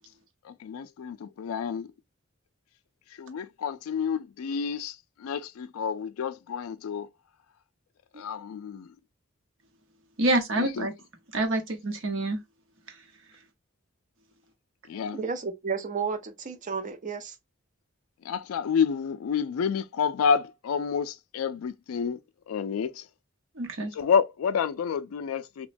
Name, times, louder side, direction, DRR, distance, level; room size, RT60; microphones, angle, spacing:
voice 1, 0.4-1.9 3.2-7.1 8.2-8.9 10.5-10.9 14.9-15.2 18.2-22.2 22.5-23.1 23.9-25.7, left 6 dB, 85° left, 0.3 m, -29 dB
voice 2, 10.2-10.9 11.3-12.4 23.6-23.9, right 2 dB, 60° right, 0.8 m, -27 dB
voice 3, 14.9-17.3, right 5 dB, 40° right, 0.5 m, -32 dB
3.0 x 2.2 x 2.5 m
head